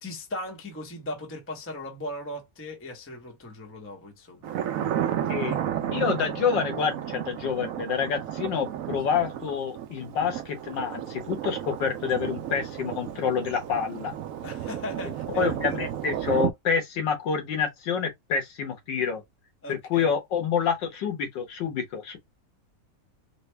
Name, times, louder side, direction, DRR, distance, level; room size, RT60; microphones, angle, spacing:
voice 1, 0.0-4.5 4.8-5.4 14.4-15.8 19.6-20.1, left 1 dB, 15° left, 0.5 m, -38 dB
Thunder, 4.4-16.5, right 10 dB, 75° right, 0.7 m, -32 dB
voice 2, 5.3-5.6 5.9-14.2 15.3-19.2 19.7-22.2, left 6 dB, 80° left, 1.7 m, -28 dB
4.0 x 2.0 x 3.2 m
omnidirectional pair, 2.0 m